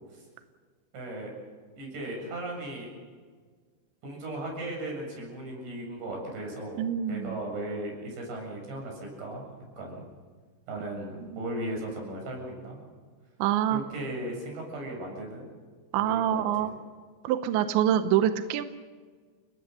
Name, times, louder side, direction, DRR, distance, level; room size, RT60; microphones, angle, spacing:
voice 1, 0.9-1.3 1.8-2.9 4.0-6.8 7.1-9.5 9.8-10.0 10.7-12.8 13.7-15.5 16.0-16.7, right 1 dB, 55° right, 0 dB, 9.6 m, -37 dB
voice 2, 6.8-7.4 11.3-11.4 13.4-13.8 15.9-16.7 17.2-18.6, right 10 dB, 75° right, 9 dB, 2.9 m, -25 dB
30.0 x 19.5 x 6.9 m, 1.5 s
omnidirectional pair, 5.8 m